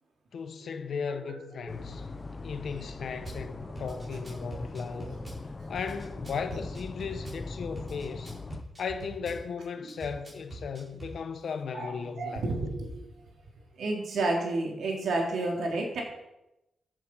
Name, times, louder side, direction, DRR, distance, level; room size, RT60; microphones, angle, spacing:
voice 1, 0.3-2.0 2.4-5.2 5.7-8.4 8.8-12.4, left 6 dB, 60° left, 1.2 m, -36 dB
sound 1, 1.7-8.6, left 3 dB, 20° left, 0.6 m, -40 dB
Drum kit / Bass drum, 3.2-3.4 3.7-5.4 5.7-7.4 7.7-9.4 9.9-11.2, right 2 dB, 20° right, 4.9 m, -43 dB
voice 2, 3.9-4.6 5.1-5.2 9.8-9.9 11.7-13.0 13.7-16.0, right 2 dB, 65° right, 3.6 m, -32 dB
14.0 x 7.6 x 5.6 m
wide cardioid pair, 150°, 0 cm